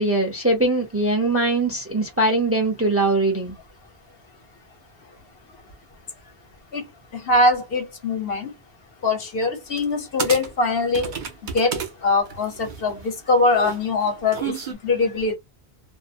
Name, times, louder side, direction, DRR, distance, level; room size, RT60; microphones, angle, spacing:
voice 1, 0.0-3.6, right 2 dB, 15° right, 0.6 m, -21 dB
voice 2, 7.1-8.5 9.0-11.1 11.4-14.5 14.8-15.4, left 3 dB, 70° left, 1.1 m, -22 dB
sound 1, 9.8-9.9 10.2-11.9 12.3-14.7, right 6 dB, 55° right, 0.7 m, -31 dB
2.6 x 2.0 x 2.6 m
omnidirectional pair, 1.0 m